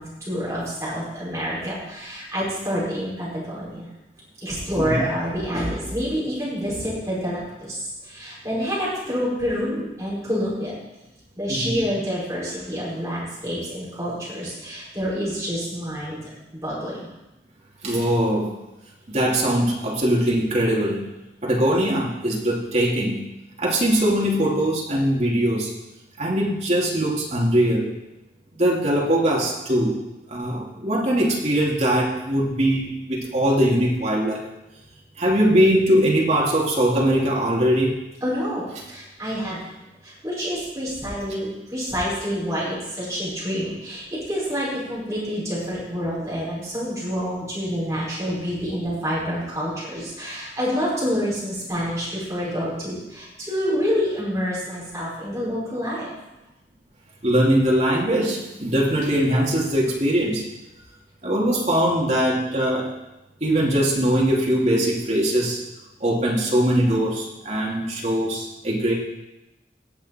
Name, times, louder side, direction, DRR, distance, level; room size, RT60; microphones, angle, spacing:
voice 1, 0.0-3.9 4.4-10.7 11.4-17.1 38.2-39.6 40.0-56.1, equal, 15° right, -8 dB, 5.4 m, -27 dB
voice 2, 4.8-5.1 11.5-11.8 17.8-18.5 19.1-21.0 21.4-23.2 23.6-25.7 26.2-27.9 28.6-30.0 30.3-34.4 35.2-38.0 57.2-60.4 61.2-62.9 63.4-65.6 66.0-68.9, right 1 dB, 40° right, -3 dB, 2.5 m, -21 dB
17.5 x 7.3 x 4.3 m, 0.97 s
head